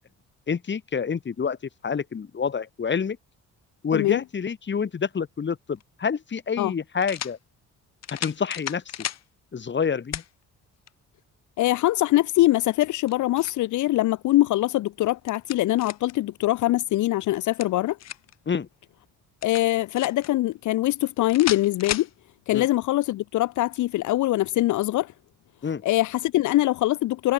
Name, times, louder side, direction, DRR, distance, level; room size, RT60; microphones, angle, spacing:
voice 1, 0.5-1.6 1.8-3.2 3.8-7.4 8.2-8.8 9.5-10.2 18.5-18.7 22.5-22.7 25.6-25.8, left 6 dB, 40° left, 2.3 m, -27 dB
sound 1, 5.8-5.9 7.0-7.4 8.0-9.2 10.1-10.3 10.9-11.0 12.8-13.6 15.0-16.2 17.3-18.4 19.4-20.3 21.3-22.1, left 11 dB, 60° left, 1.2 m, -34 dB
voice 2, 11.6-18.0 19.4-22.1 22.5-25.1 25.8-27.3, left 16 dB, 75° left, 0.7 m, -23 dB
cardioid pair, 90°, 30 cm